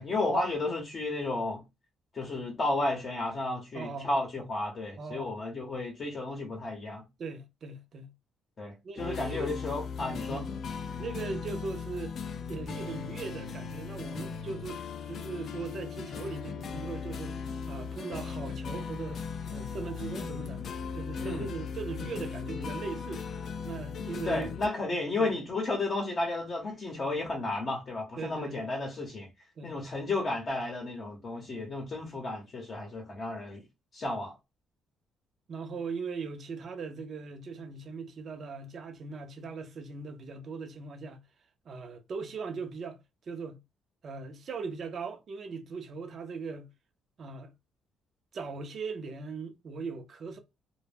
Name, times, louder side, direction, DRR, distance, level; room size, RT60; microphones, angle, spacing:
voice 1, 0.0-1.6 2.1-7.0 8.6-10.4 21.2-21.5 24.3-29.3 29.6-33.6 33.9-34.3, left 2 dB, 40° left, 0.7 m, -33 dB
voice 2, 3.7-4.5 5.0-5.5 7.2-8.1 8.8-9.6 10.3-10.5 11.0-12.2 12.5-17.4 17.7-20.6 20.9-23.2 23.6-24.5 25.2-25.4 28.2-28.7 29.6-29.8 35.5-41.2 41.7-43.0 43.3-43.6 44.0-46.7 47.2-47.5 48.3-50.4, right 4 dB, 50° right, 0.5 m, -39 dB
sound 1, 9.0-24.7, left 6 dB, 55° left, 0.3 m, -38 dB
2.1 x 2.0 x 3.2 m
cardioid pair, 110°, 0 cm